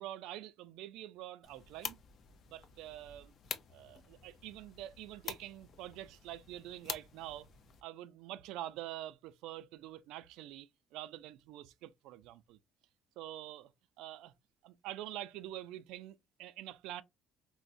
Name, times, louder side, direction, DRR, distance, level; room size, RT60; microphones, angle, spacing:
voice 1, 0.0-2.0 2.5-3.3 3.7-7.5 7.8-12.6 13.2-13.7 14.0-14.3 14.6-17.0, right 13 dB, 90° right, 0.3 m, -46 dB
sound 1, 1.4-7.8, left 7 dB, 40° left, 0.4 m, -47 dB
4.4 x 2.0 x 2.5 m
cardioid pair, 175°, 0 cm